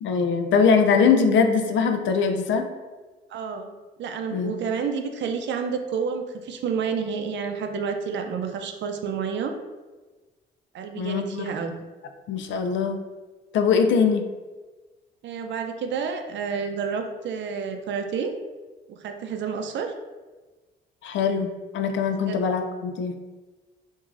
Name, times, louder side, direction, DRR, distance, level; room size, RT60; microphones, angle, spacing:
voice 1, 0.0-2.7 4.3-4.5 11.0-11.5 12.3-13.0 13.5-14.2 21.0-23.1, left 5 dB, 70° left, 7 dB, 0.5 m, -22 dB
voice 2, 3.3-3.7 4.0-9.6 10.7-11.7 15.2-18.3 18.9-19.9 22.3-22.4, right 6 dB, 65° right, 5 dB, 0.5 m, -29 dB
4.5 x 2.6 x 2.5 m, 1.3 s
cardioid pair, 90°, 20 cm